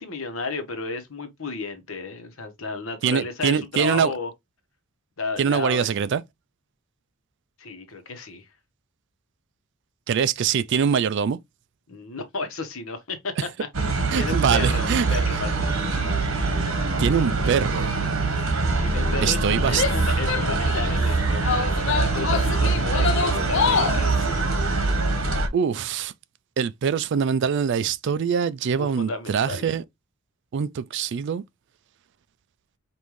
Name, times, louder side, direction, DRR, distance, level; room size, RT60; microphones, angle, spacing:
voice 1, 0.0-4.3 5.2-5.9 7.6-8.5 11.9-13.3 13.6-15.8 18.8-24.6 28.7-29.7, left 3 dB, 75° left, 1.1 m, -33 dB
voice 2, 3.0-4.1 5.4-6.2 10.1-11.4 14.1-15.1 17.0-18.0 19.2-19.8 25.5-26.1 26.6-29.8 30.5-31.4, right 7 dB, 55° right, 0.3 m, -23 dB
sound 1, 13.7-25.5, right 3 dB, 80° right, 1.1 m, -23 dB
Female speech woman speaking / Yell, 19.7-20.9 21.4-24.1, left 6 dB, 60° left, 0.5 m, -26 dB
5.3 x 2.6 x 3.1 m
head